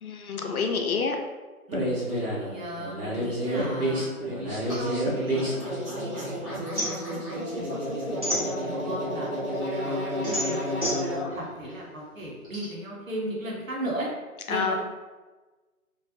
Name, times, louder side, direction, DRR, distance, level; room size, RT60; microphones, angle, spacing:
voice 1, 0.0-1.2 14.5-14.7, left 5 dB, 75° left, 3 dB, 0.5 m, -27 dB
sound 1, 1.7-11.2, equal, 90° right, 1.2 m, -30 dB
voice 2, 2.3-4.1 4.8-9.3 9.8-11.0 11.3-14.1 14.5-14.8, right 1 dB, 60° right, -4 dB, 0.9 m, -37 dB
sound 2, 4.7-6.2 6.5-9.0 9.5-12.6, equal, 25° right, 0.7 m, -32 dB
2.5 x 2.0 x 2.5 m, 1.2 s
figure-of-eight pair, 155°, 44 cm